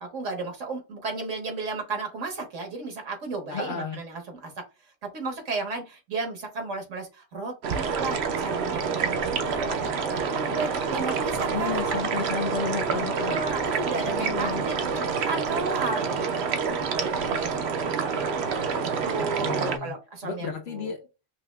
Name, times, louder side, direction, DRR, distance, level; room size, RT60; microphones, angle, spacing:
voice 1, 0.0-4.5 5.1-9.8 10.1-12.0 13.2-18.0 18.5-20.9, right 3 dB, 80° right, 1.5 m, -34 dB
voice 2, 3.5-4.0 11.5-13.4 14.1-14.7 19.4-20.0 20.2-21.1, left 5 dB, 65° left, 0.8 m, -32 dB
sound 1, 7.6-19.8, right 5 dB, 65° right, 0.8 m, -27 dB
5.5 x 2.3 x 2.2 m
omnidirectional pair, 1.3 m